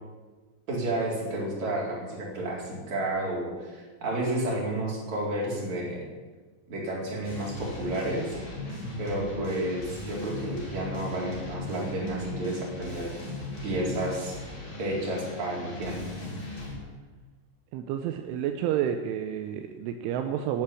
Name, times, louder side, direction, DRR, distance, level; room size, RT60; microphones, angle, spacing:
voice 1, 0.7-6.1 6.7-8.4 9.0-13.1 13.6-14.4 14.8-16.1, right 1 dB, 35° right, -3 dB, 5.0 m, -31 dB
sound 1, 7.2-16.8, left 1 dB, 25° left, 5.1 m, -37 dB
voice 2, 17.7-20.6, right 10 dB, 80° right, 6 dB, 3.2 m, -30 dB
11.5 x 11.0 x 10.0 m, 1.3 s
omnidirectional pair, 5.9 m